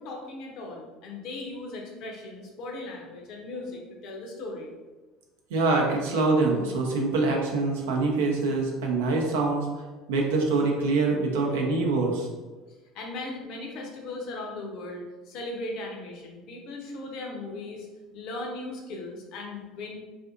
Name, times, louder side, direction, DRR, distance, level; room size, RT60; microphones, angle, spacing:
voice 1, 0.0-4.7 12.9-17.9 18.1-20.0, left 2 dB, 55° left, 0 dB, 0.5 m, -38 dB
voice 2, 5.5-9.7 10.1-12.3, right 3 dB, 70° right, 0 dB, 0.5 m, -24 dB
2.5 x 2.4 x 2.4 m, 1.3 s
figure-of-eight pair, 65°, 0 cm